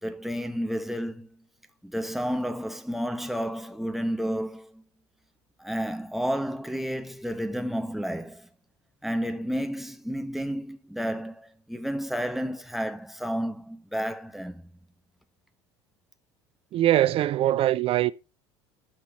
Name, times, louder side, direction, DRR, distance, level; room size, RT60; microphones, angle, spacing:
voice 1, 0.0-1.4 1.8-4.8 5.6-8.5 9.0-14.6, equal, ahead, 1.3 m, -31 dB
voice 2, 16.7-18.1, right 13 dB, 40° right, 0.4 m, -22 dB
13.0 x 5.8 x 4.2 m
figure-of-eight pair, 70°, 15 cm